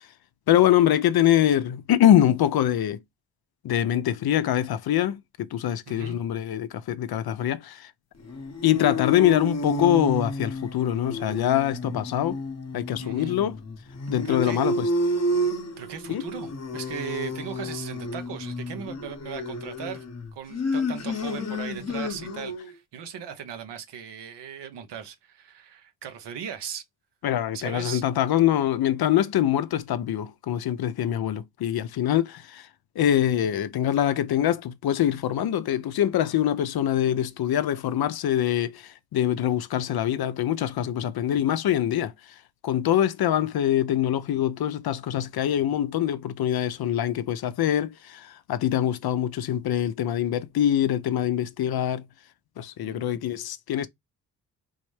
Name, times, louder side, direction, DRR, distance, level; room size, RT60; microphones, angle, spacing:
voice 1, 0.5-3.0 3.6-7.9 8.6-12.4 12.7-13.6 14.1-14.9 16.1-16.2 27.2-32.7 33.0-42.3 42.6-52.1 52.6-53.9, left 11 dB, 60° left, 0.6 m, -24 dB
voice 2, 5.9-6.2 13.0-13.4 14.2-14.6 15.8-20.0 20.3-26.8 27.5-28.0 52.8-53.2, right 8 dB, 80° right, 0.9 m, -38 dB
sound 1, 8.2-22.7, left 1 dB, 40° left, 0.9 m, -31 dB
3.8 x 2.1 x 3.1 m
cardioid pair, 55°, 41 cm